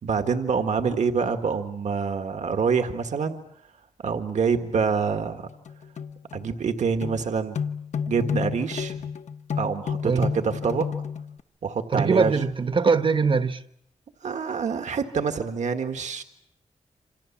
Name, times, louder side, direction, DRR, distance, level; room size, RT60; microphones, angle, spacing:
voice 1, 0.0-3.4 4.0-5.5 6.3-7.6 8.1-8.9 9.6-10.9 11.6-12.3 14.2-16.2, right 5 dB, 70° right, 1.8 m, -26 dB
sound 1, 5.5-6.5 7.0-7.3 7.6-11.4, left 7 dB, 70° left, 1.0 m, -31 dB
voice 2, 11.9-13.6, right 5 dB, 45° right, 1.1 m, -22 dB
28.0 x 27.0 x 7.3 m
wide cardioid pair, 180°, 12 cm